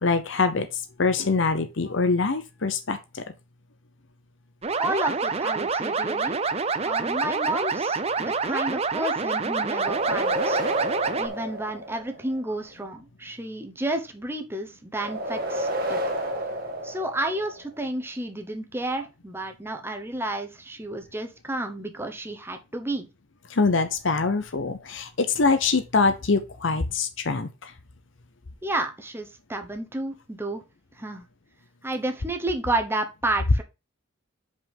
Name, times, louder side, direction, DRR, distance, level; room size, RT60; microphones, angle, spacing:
voice 1, 0.0-3.2 23.5-27.7, left 4 dB, 65° left, 0.8 m, -24 dB
sound 1, 4.6-11.3, right 4 dB, 30° right, 0.6 m, -27 dB
voice 2, 4.8-6.4 6.8-10.6 11.2-16.0 16.8-23.1 28.6-30.6 31.0-31.2 31.8-33.6, right 1 dB, 10° right, 1.0 m, -31 dB
sound 2, 9.6-12.4 15.0-17.7, right 1 dB, 50° right, 1.6 m, -30 dB
5.6 x 5.3 x 5.3 m
head